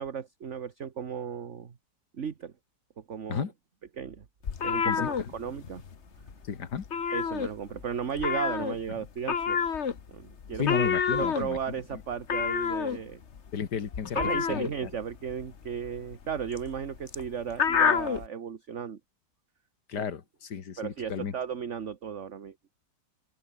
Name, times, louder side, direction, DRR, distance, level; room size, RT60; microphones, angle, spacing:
voice 1, 0.0-1.7 2.1-2.5 3.0-3.5 4.0-4.2 4.6-5.8 7.1-9.6 10.1-13.2 14.1-19.0 20.0-20.1 20.8-22.5, right 7 dB, 40° right, 1.5 m, -35 dB
sound 1, 4.4-6.0 6.2-6.5 6.7-7.8 8.2-18.3, left 6 dB, 40° left, 1.4 m, -29 dB
voice 2, 6.5-6.8 10.6-11.6 13.5-14.2 14.5-14.9 19.9-21.3, left 7 dB, 60° left, 2.3 m, -33 dB
open air
omnidirectional pair, 2.0 m